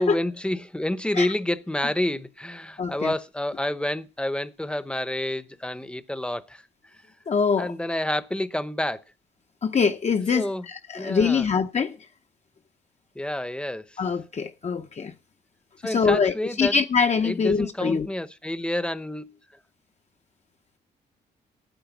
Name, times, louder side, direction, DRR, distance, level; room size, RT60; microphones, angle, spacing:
voice 1, 0.0-6.6 7.6-9.0 10.3-10.7 10.9-11.5 13.1-14.0 15.8-16.7 17.2-19.4, left 1 dB, 5° left, 0.8 m, -29 dB
voice 2, 2.8-3.1 7.3-7.7 9.6-12.0 14.0-15.1 15.8-18.1, left 5 dB, 40° left, 0.8 m, -24 dB
9.1 x 8.7 x 7.1 m
cardioid pair, 90°, 18 cm